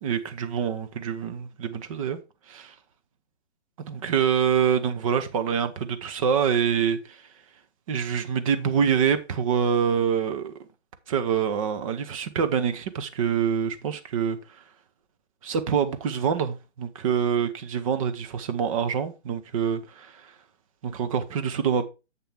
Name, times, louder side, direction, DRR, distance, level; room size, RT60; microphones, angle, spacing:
voice 1, 0.0-2.2 2.5-2.7 3.9-7.2 7.9-10.5 11.1-14.4 15.4-20.3 20.8-21.9, right 7 dB, 30° right, 1.0 m, -25 dB
7.6 x 6.8 x 3.5 m
figure-of-eight pair, 135°, 35 cm